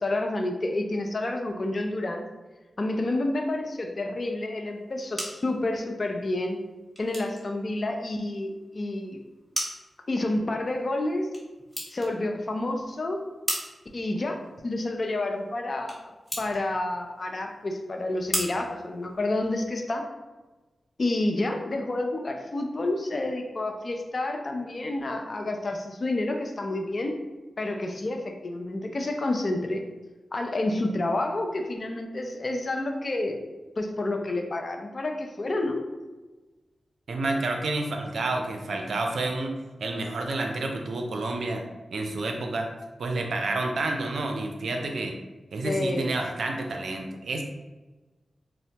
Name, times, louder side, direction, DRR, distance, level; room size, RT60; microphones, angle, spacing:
voice 1, 0.0-2.2 2.8-6.6 7.0-9.2 10.1-11.3 11.9-13.2 13.9-16.0 16.4-20.1 21.0-27.2 27.6-29.8 30.3-33.4 33.8-35.8 45.6-46.1, left 2 dB, 55° left, 3 dB, 0.5 m, -29 dB
sound 1, 4.7-19.7, equal, ahead, 1.3 m, -39 dB
voice 2, 37.1-39.6 39.8-41.7 41.9-42.7 43.0-45.2 45.5-47.4, right 2 dB, 80° right, 3 dB, 0.4 m, -29 dB
4.2 x 2.0 x 2.8 m, 1.2 s
cardioid pair, 40°, 0 cm